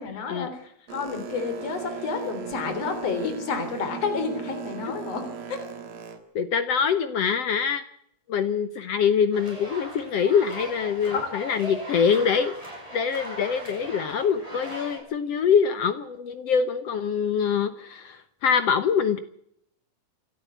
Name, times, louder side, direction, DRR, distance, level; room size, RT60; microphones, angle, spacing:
voice 1, 0.0-5.7 11.1-11.4, left 5 dB, 45° left, 7 dB, 4.6 m, -30 dB
Boat Water vehicle, 0.9-6.2, right 7 dB, 70° right, 3.6 m, -37 dB
voice 2, 6.3-7.8 8.3-12.5 12.9-19.2, left 7 dB, 70° left, 11 dB, 1.5 m, -24 dB
sound 1, 9.3-15.0, equal, 10° right, 7.7 m, -39 dB
27.5 x 13.5 x 8.1 m, 0.72 s
omnidirectional pair, 4.2 m